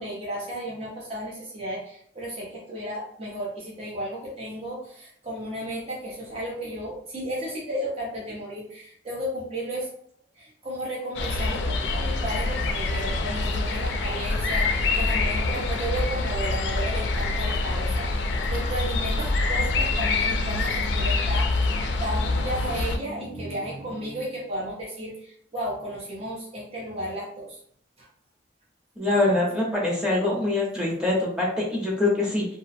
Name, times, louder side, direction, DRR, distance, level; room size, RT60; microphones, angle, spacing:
voice 1, 0.0-9.9 10.4-27.6 28.0-28.1, right 1 dB, 35° right, -5 dB, 0.7 m, -34 dB
sound 1, 11.1-23.0, left 3 dB, 70° left, 0.3 m, -25 dB
voice 2, 29.0-32.5, left 2 dB, 5° right, -3 dB, 0.7 m, -24 dB
2.7 x 2.1 x 2.5 m, 0.63 s
head